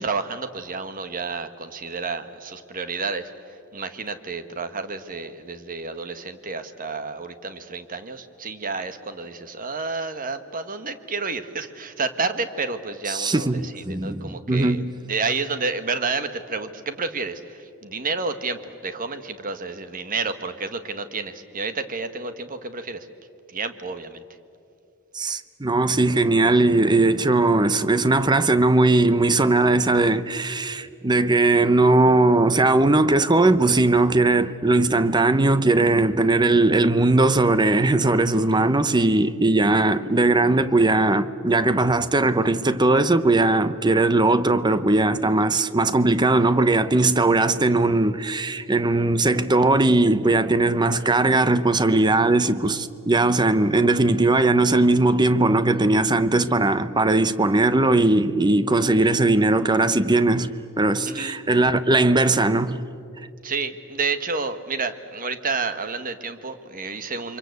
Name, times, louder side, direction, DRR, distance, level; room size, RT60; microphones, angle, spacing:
voice 1, 0.0-23.1 23.5-24.2 61.1-61.4 63.4-67.4, right 4 dB, 40° right, 1.4 m, -30 dB
voice 2, 13.1-14.9 25.1-62.8, right 2 dB, 20° right, 0.8 m, -19 dB
29.0 x 24.5 x 8.2 m
head